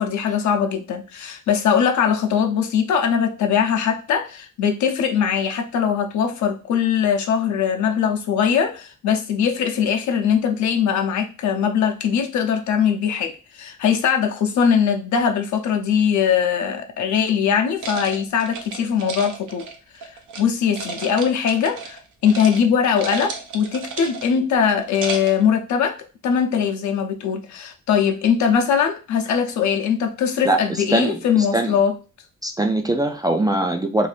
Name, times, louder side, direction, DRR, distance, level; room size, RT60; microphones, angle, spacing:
voice 1, 0.0-19.7 20.0-20.1 20.4-26.0 26.2-31.9, left 7 dB, 70° left, 0.7 m, -21 dB
sound 1, 17.8-20.4 20.7-22.0 22.2-22.6 22.8-24.4 24.8-25.4, right 4 dB, 80° right, 0.7 m, -33 dB
voice 2, 30.9-31.8 32.4-34.1, right 2 dB, 15° right, 0.3 m, -21 dB
2.7 x 2.5 x 3.3 m
cardioid pair, 90°, 30 cm